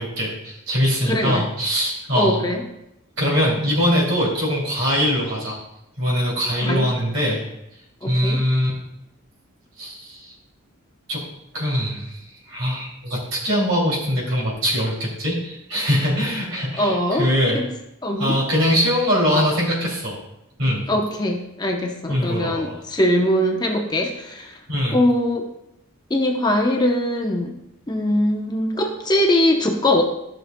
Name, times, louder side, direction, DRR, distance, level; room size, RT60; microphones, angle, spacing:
voice 1, 0.0-2.4 3.2-5.6 6.0-7.4 8.0-8.7 9.8-10.3 11.1-11.2 11.5-12.2 12.5-17.6 18.2-20.2 20.6-20.8 22.1-22.8 24.7-25.0, equal, 60° right, -4 dB, 2.7 m, -22 dB
voice 2, 1.1-1.5 2.1-2.6 6.6-6.9 8.0-8.4 16.7-17.7 18.0-18.4 20.9-24.5 24.9-25.4 26.1-27.5 27.9-30.0, left 1 dB, 20° left, 2 dB, 0.7 m, -21 dB
13.5 x 6.5 x 2.2 m, 0.83 s
head